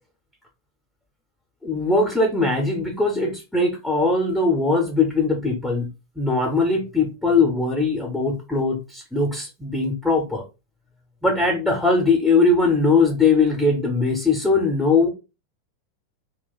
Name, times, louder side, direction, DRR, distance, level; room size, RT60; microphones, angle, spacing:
voice 1, 1.6-5.9 6.2-10.4 11.2-15.1, left 3 dB, 5° left, 0.8 m, -20 dB
2.4 x 2.3 x 3.8 m
figure-of-eight pair, 90°, 0 cm